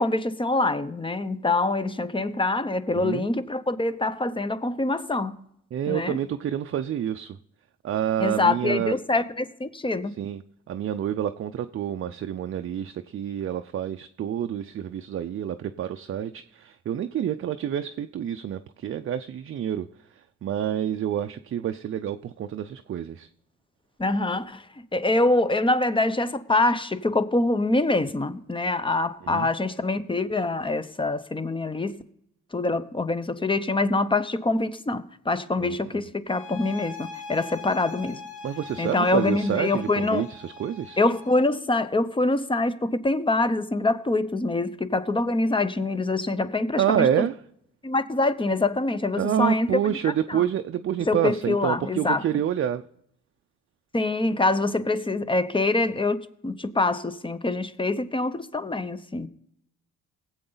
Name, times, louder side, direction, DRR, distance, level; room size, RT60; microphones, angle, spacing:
voice 1, 0.0-5.3 5.9-6.2 8.2-10.1 24.0-24.6 24.9-32.0 32.5-38.2 38.8-40.3 41.0-47.3 47.8-50.4 51.0-52.2 53.9-56.2 56.4-59.3, left 2 dB, 15° left, 0.7 m, -25 dB
voice 2, 2.9-3.3 5.7-7.4 7.8-8.9 10.2-10.4 10.7-19.9 20.4-23.3 29.3-29.5 35.6-36.0 38.4-41.0 46.8-47.3 49.2-52.8, right 10 dB, 45° right, 0.5 m, -28 dB
sound 1, 36.3-41.5, left 4 dB, 50° left, 3.0 m, -41 dB
18.5 x 7.9 x 3.9 m
cardioid pair, 90°, 30 cm